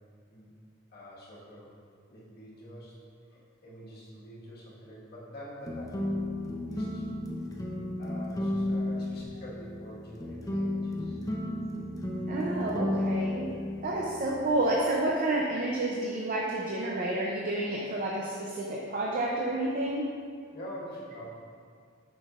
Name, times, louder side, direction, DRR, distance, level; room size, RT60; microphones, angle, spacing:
voice 1, 0.9-1.7 2.1-2.9 3.3-6.1 6.7-7.1 8.0-11.2 13.3-13.7 20.5-21.2, equal, 55° left, -6 dB, 1.6 m, -46 dB
sound 1, 5.6-14.9, left 1 dB, 20° left, 0.7 m, -33 dB
voice 2, 12.3-13.5 13.8-20.1, right 1 dB, 45° right, -3 dB, 0.6 m, -30 dB
8.5 x 6.0 x 2.5 m, 2.2 s
head